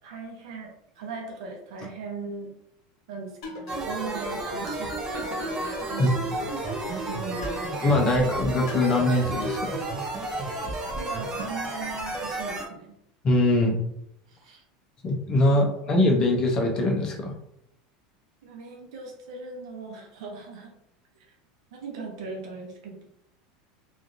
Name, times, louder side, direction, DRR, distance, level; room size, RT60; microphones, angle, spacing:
voice 1, 0.0-2.5 3.1-6.5 7.1-7.7 8.1-8.2 10.5-13.0 14.3-14.6 15.5-16.0 18.4-20.7 21.7-23.0, right 4 dB, 80° right, 0 dB, 0.7 m, -39 dB
sound 1, 3.4-4.2 4.7-6.1 6.7-8.1 8.7-10.1, equal, 65° left, 0.8 m, -39 dB
sound 2, 3.7-12.7, right 2 dB, 20° right, 0.6 m, -32 dB
voice 2, 7.8-9.8 13.2-13.8 15.0-17.3, left 1 dB, 25° left, 1 dB, 0.6 m, -22 dB
3.1 x 2.5 x 2.6 m, 0.76 s
supercardioid pair, 155°, 3 cm